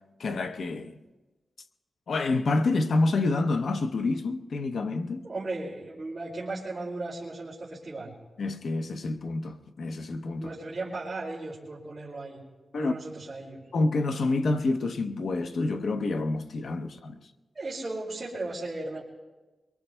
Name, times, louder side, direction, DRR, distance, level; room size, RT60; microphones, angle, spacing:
voice 1, 0.2-1.0 2.1-5.3 8.4-10.5 12.7-12.9 13.7-17.2, left 3 dB, 75° left, 0.7 m, -28 dB
voice 2, 5.2-8.1 10.4-12.4 12.8-13.6 17.5-19.0, right 2 dB, 35° right, 2.4 m, -36 dB
23.0 x 23.0 x 2.2 m
wide cardioid pair, 125°, 0 cm